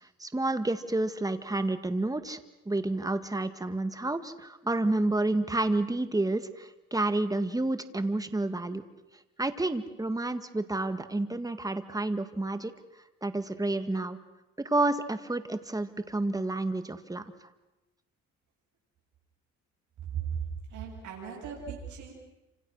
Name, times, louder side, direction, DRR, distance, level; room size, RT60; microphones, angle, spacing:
voice 1, 0.2-2.4 2.7-8.8 9.4-12.7 13.2-14.2 14.6-17.2, right 2 dB, 10° right, 10 dB, 1.9 m, -30 dB
voice 2, 20.7-22.1, right 8 dB, 75° right, -3 dB, 7.8 m, -38 dB
28.5 x 27.0 x 6.5 m, 0.99 s
cardioid pair, 90°, 30 cm